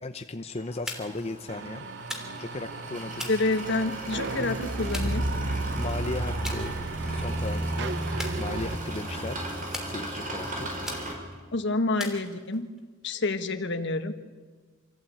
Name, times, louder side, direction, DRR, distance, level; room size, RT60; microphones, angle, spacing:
voice 1, 0.0-1.9 2.4-3.3 5.8-6.8 7.1-8.0 8.3-9.4 9.8-10.7, left 2 dB, 30° left, 7 dB, 0.8 m, -36 dB
sound 1, 0.6-11.1, right 1 dB, 40° right, 5.3 m, -34 dB
sound 2, 0.9-1.3 2.1-2.6 3.2-4.1 4.9-5.7 6.4-6.6 7.0-7.4 8.2-9.0 9.7-10.4 10.9-11.4 12.0-12.8, equal, 5° right, 3.0 m, -40 dB
sound 3, 1.5-8.8, right 4 dB, 60° right, 0.7 m, -36 dB
voice 2, 3.3-5.2 11.5-12.7 13.0-14.1, left 2 dB, 60° left, 9 dB, 1.4 m, -28 dB
26.5 x 14.5 x 8.6 m, 1.4 s
head